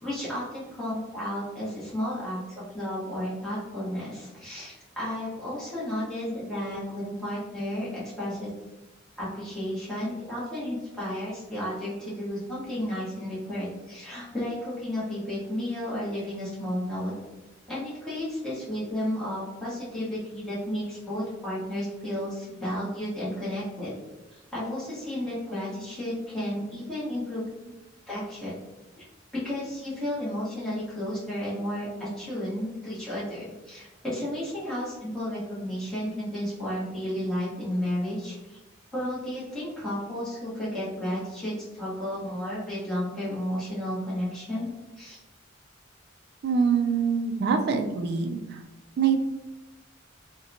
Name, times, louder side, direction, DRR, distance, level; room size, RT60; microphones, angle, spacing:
voice 1, 0.0-2.4 2.7-8.5 9.2-17.1 17.7-23.9 24.5-27.4 28.1-28.5 29.0-29.1 29.3-38.6 38.9-44.7 45.0-45.2, left 1 dB, 5° left, -11 dB, 0.9 m, -32 dB
voice 2, 46.4-48.4 49.0-49.3, right 6 dB, 55° right, 4 dB, 0.3 m, -24 dB
2.8 x 2.1 x 2.5 m, 1.1 s
head